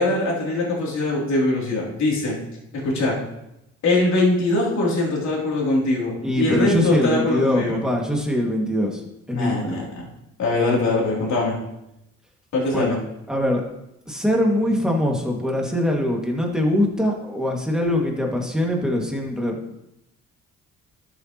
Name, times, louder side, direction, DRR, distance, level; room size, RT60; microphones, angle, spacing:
voice 1, 0.0-2.4 2.7-3.2 3.8-7.8 9.3-10.1 10.4-11.5 12.5-13.0, left 2 dB, 65° left, -3 dB, 3.3 m, -22 dB
voice 2, 6.2-9.0 9.3-9.5 12.7-12.9 13.3-13.6 14.1-19.8, left 1 dB, ahead, -1 dB, 2.2 m, -22 dB
13.0 x 7.0 x 3.1 m, 0.86 s
cardioid pair, 90°, 30 cm